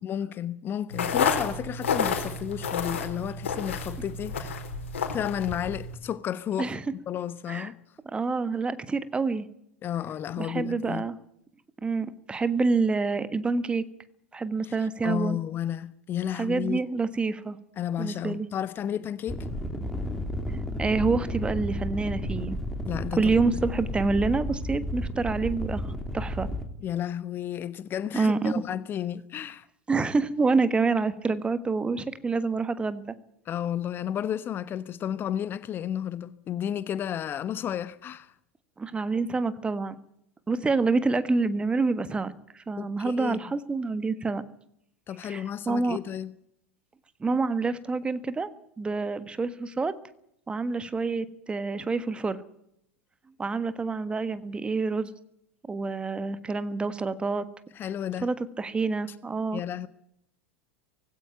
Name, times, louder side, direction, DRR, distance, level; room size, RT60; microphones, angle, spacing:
voice 1, 0.0-4.6 5.1-6.7 7.1-7.8 9.8-11.0 14.6-16.8 17.8-19.5 22.8-23.7 26.8-29.7 33.5-38.3 42.8-43.4 45.1-46.3 57.8-58.3 59.5-59.9, left 10 dB, 30° left, 1.0 m, -32 dB
sound 1, 0.9-6.0, left 6 dB, 65° left, 4.2 m, -30 dB
voice 2, 8.1-9.5 10.4-11.1 11.8-13.8 14.3-15.4 16.3-17.6 18.0-18.5 20.8-22.6 23.1-26.5 28.1-28.6 29.9-33.1 38.8-40.0 40.5-44.4 45.2-46.0 47.2-48.5 48.8-49.9 50.5-52.4 53.4-55.1 55.7-57.5 58.2-59.6, right 4 dB, 15° right, 1.5 m, -27 dB
sound 2, 19.3-26.7, left 1 dB, ahead, 3.1 m, -32 dB
18.5 x 16.5 x 9.3 m
figure-of-eight pair, 85°, 7 cm